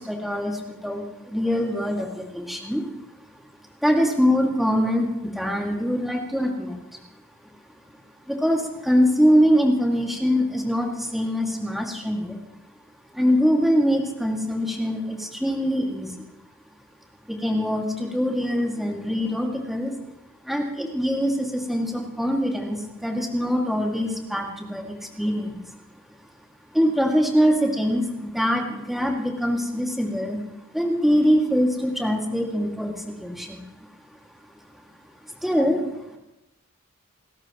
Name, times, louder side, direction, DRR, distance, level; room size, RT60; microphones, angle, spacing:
voice 1, 0.0-2.9 3.8-7.0 8.3-12.4 13.1-16.1 17.3-19.9 20.4-25.8 26.7-30.4 30.7-33.6 34.7-34.8 35.3-36.2, equal, ahead, -1 dB, 2.2 m, -23 dB
30.0 x 13.5 x 3.1 m, 0.96 s
head